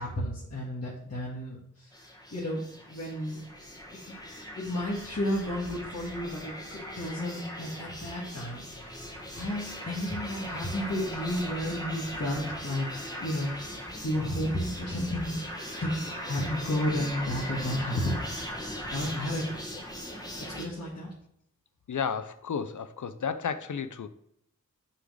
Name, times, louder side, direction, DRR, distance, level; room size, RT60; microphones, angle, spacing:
voice 1, 0.0-1.9 2.3-2.6 2.9-3.4 4.6-8.9 9.3-12.9 13.2-15.4 15.8-15.9 16.2-18.2 18.9-19.4 20.4-21.1, left 1 dB, 50° left, -6 dB, 1.9 m, -32 dB
sound 1, 1.9-20.7, equal, 10° left, 1.5 m, -39 dB
voice 2, 21.9-24.1, left 6 dB, 70° left, 11 dB, 0.6 m, -32 dB
6.5 x 3.9 x 6.3 m, 0.75 s
wide cardioid pair, 60°, 32 cm